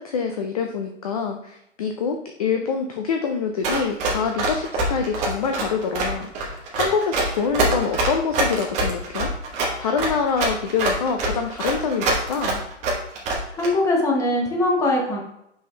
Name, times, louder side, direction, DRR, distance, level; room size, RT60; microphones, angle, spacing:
voice 1, 0.0-9.3 9.8-12.6, left 6 dB, 30° left, 4 dB, 0.4 m, -25 dB
Run, 3.6-13.7, right 2 dB, 20° right, 1.1 m, -24 dB
voice 2, 13.5-15.2, left 2 dB, 10° left, -1 dB, 0.9 m, -21 dB
6.7 x 5.6 x 3.2 m, 0.77 s
hypercardioid pair, 155°, 36 cm